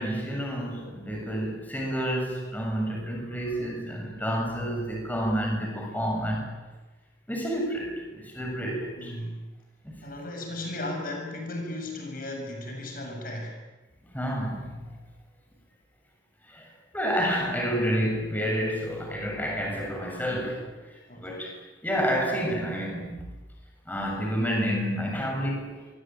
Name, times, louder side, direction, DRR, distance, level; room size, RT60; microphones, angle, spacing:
voice 1, 0.0-6.5 7.3-9.1 9.8-10.2 14.0-15.0 16.4-21.5 21.8-23.2 23.9-25.8, equal, 10° left, 0 dB, 7.4 m, -29 dB
voice 2, 9.0-9.4 10.0-13.6 21.1-21.4, left 1 dB, 50° left, 3 dB, 7.3 m, -35 dB
26.5 x 24.0 x 9.1 m, 1.2 s
head